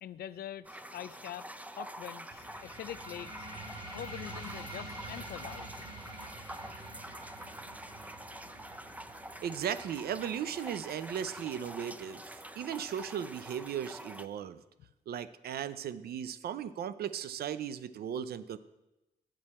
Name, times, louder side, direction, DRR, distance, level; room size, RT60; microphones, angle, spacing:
voice 1, 0.0-3.5 3.9-5.8, left 11 dB, 75° left, 16 dB, 0.4 m, -44 dB
sound 1, 0.6-14.3, right 1 dB, 10° right, 0.5 m, -46 dB
sound 2, 2.3-13.4, right 1 dB, 30° right, 2.5 m, -48 dB
voice 2, 9.4-14.6 15.1-18.6, right 9 dB, 75° right, 14 dB, 0.5 m, -37 dB
8.9 x 7.5 x 4.2 m, 0.96 s
cardioid pair, 60°, 16 cm